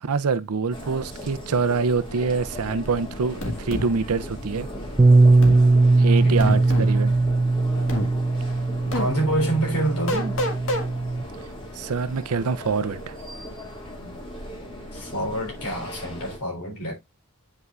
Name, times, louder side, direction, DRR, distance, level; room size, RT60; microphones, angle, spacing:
voice 1, 0.0-4.7 6.0-7.1 11.8-13.1, right 4 dB, 75° right, 0.6 m, -25 dB
sound 1, 0.7-16.4, equal, 25° left, 2.3 m, -37 dB
sound 2, 3.4-3.9 5.4-5.6 6.4-6.9 7.9-8.1 8.9-9.1 10.1-10.9, left 1 dB, 60° left, 1.7 m, -27 dB
Bass guitar, 5.0-11.2, right 3 dB, 20° right, 0.3 m, -19 dB
voice 2, 6.2-6.6 8.9-10.4 14.9-16.9, right 1 dB, 80° left, 3.7 m, -27 dB
9.2 x 5.5 x 2.4 m
head